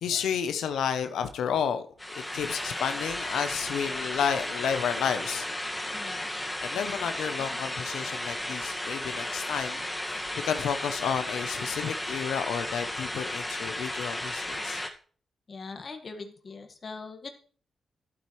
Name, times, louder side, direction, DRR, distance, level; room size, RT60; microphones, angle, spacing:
voice 1, 0.0-1.9 2.3-5.6 6.6-14.8, left 8 dB, 90° left, 0.7 m, -31 dB
sound 1, 2.0-14.9, left 1 dB, 15° left, 1.7 m, -34 dB
voice 2, 5.9-6.3 6.7-7.1 7.4-7.6 15.5-17.4, left 4 dB, 50° left, 1.6 m, -42 dB
11.5 x 8.5 x 3.2 m
cardioid pair, 65°, 0 cm